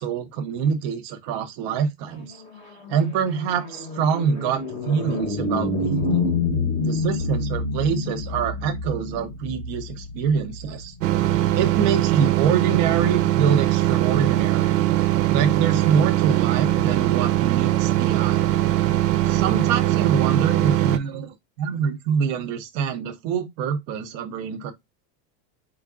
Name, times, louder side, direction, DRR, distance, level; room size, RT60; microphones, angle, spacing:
voice 1, 0.0-2.4 2.9-6.3 6.8-10.9 11.5-14.8 15.3-18.5 19.3-24.7, right 7 dB, 30° right, 0.5 m, -25 dB
sound 1, 2.2-11.8, left 3 dB, 10° left, 0.8 m, -28 dB
sound 2, 11.0-21.0, right 14 dB, 80° right, 0.8 m, -21 dB
4.6 x 2.3 x 3.5 m
supercardioid pair, 170°, 48 cm